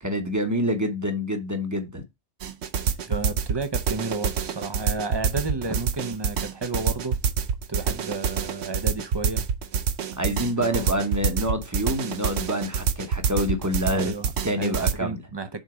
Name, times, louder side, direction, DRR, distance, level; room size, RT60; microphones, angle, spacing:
voice 1, 0.0-2.0 5.7-5.8 10.2-14.1 14.4-15.2, equal, 15° right, 0.8 m, -27 dB
sound 1, 2.4-14.9, right 6 dB, 60° right, 0.9 m, -26 dB
voice 2, 3.1-7.2 7.7-9.5 10.6-10.9 13.9-14.3 14.6-15.6, right 3 dB, 30° right, 0.5 m, -32 dB
6.4 x 4.1 x 4.8 m
omnidirectional pair, 1.4 m